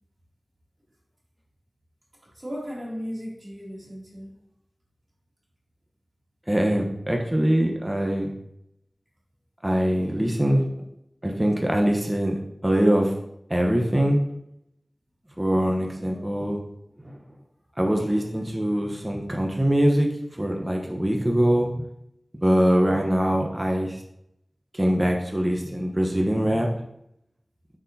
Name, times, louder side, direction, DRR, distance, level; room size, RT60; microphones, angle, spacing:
voice 1, 2.3-4.3 16.0-16.7, equal, 40° right, -5 dB, 2.6 m, -36 dB
voice 2, 6.5-8.3 9.6-10.7 11.2-13.1 13.5-14.2 15.4-16.6 17.0-17.1 17.8-21.9 22.4-24.0 24.7-26.7, equal, 20° right, 1 dB, 1.0 m, -23 dB
6.6 x 6.0 x 2.8 m, 0.79 s
wide cardioid pair, 40°, 0 cm